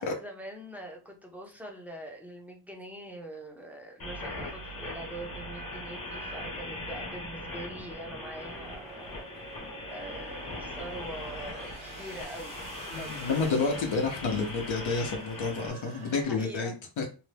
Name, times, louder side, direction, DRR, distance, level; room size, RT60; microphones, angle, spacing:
voice 1, 0.0-9.5 9.9-13.2 15.9-16.8, right 1 dB, 5° right, 1 dB, 0.5 m, -43 dB
sound 1, 4.0-15.7, left 1 dB, 50° left, 1.0 m, -40 dB
sound 2, 5.7-16.2, right 3 dB, 80° right, 1.2 m, -48 dB
voice 2, 12.9-17.1, left 4 dB, 75° left, 2 dB, 0.7 m, -30 dB
2.7 x 2.1 x 3.2 m, 0.34 s
wide cardioid pair, 165°, 47 cm